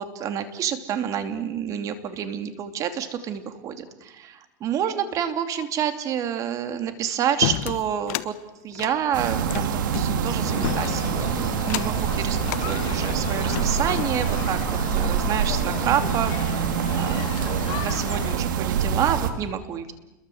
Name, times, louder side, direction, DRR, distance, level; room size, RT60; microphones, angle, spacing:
voice 1, 0.0-8.4 8.6-14.6 14.9-19.9, right 9 dB, 30° right, 8 dB, 2.8 m, -28 dB
sound 1, 7.4-8.3 8.7-10.1 10.6-11.1 11.6-12.0 12.4-12.7 13.3-14.2, left 15 dB, 60° left, 1.3 m, -30 dB
sound 2, 9.1-19.3, right 7 dB, 85° right, 3.1 m, -25 dB
sound 3, 10.4-18.3, left 11 dB, 40° left, 2.3 m, -35 dB
29.5 x 22.5 x 7.9 m, 1.0 s
supercardioid pair, 145°, 10 cm